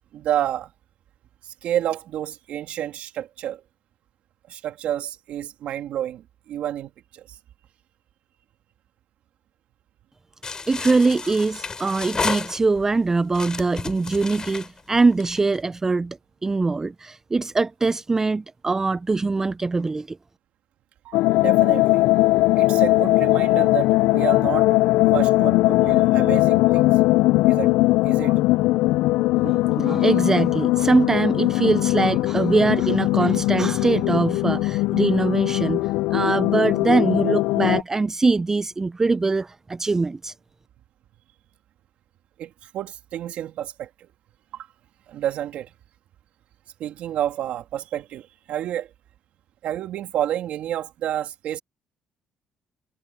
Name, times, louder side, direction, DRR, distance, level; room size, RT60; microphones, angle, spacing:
voice 1, 0.1-0.7 1.4-3.6 4.5-7.4 21.0-22.0 22.6-24.7 25.1-27.0 27.5-27.7 28.0-28.4 42.4-43.9 44.5-44.7 45.1-45.7 46.8-48.9 49.6-51.6, right 11 dB, 70° right, 2.7 m, -30 dB
sound 1, 10.4-12.9 13.3-15.6, left 4 dB, 30° left, 5.3 m, -31 dB
voice 2, 10.7-20.2 29.4-40.3, right 3 dB, 20° right, 0.3 m, -22 dB
sound 2, 21.1-37.8, left 19 dB, 85° left, 0.3 m, -20 dB
supercardioid pair, 80°, 2 cm